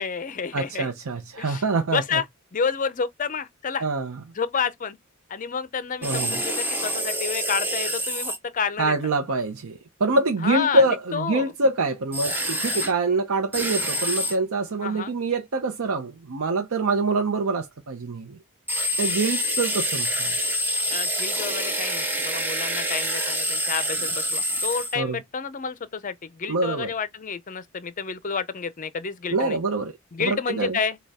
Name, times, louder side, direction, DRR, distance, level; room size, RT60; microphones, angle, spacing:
voice 1, 0.0-0.9 1.4-1.6 1.9-2.2 2.5-3.9 4.3-5.0 5.3-8.9 10.4-10.8 11.1-11.5 14.8-15.1 20.9-29.6 30.1-31.0, left 6 dB, 35° left, 0.5 m, -29 dB
voice 2, 0.5-2.0 3.8-4.2 6.0-6.4 8.8-18.4 19.0-20.3 25.0-25.2 26.5-26.9 29.3-29.9 30.2-30.8, right 3 dB, 75° right, 0.7 m, -25 dB
sound 1, 6.0-8.4 12.1-12.9 13.5-14.4 18.7-25.0, equal, 10° right, 0.7 m, -27 dB
6.4 x 2.3 x 3.5 m
head